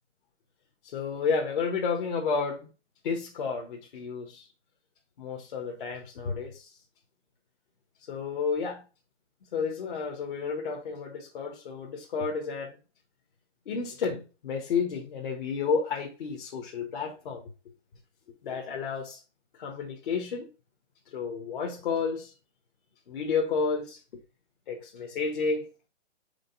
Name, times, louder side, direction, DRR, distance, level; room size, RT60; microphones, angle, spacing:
voice 1, 0.8-2.7 3.0-4.5 5.2-6.7 8.1-8.8 9.5-12.7 13.7-17.4 18.4-19.2 19.6-20.5 21.1-22.3 23.1-24.0 24.7-25.7, left 5 dB, 45° left, 1.3 m, -31 dB
5.2 x 5.0 x 3.9 m
hypercardioid pair, 155°, 36 cm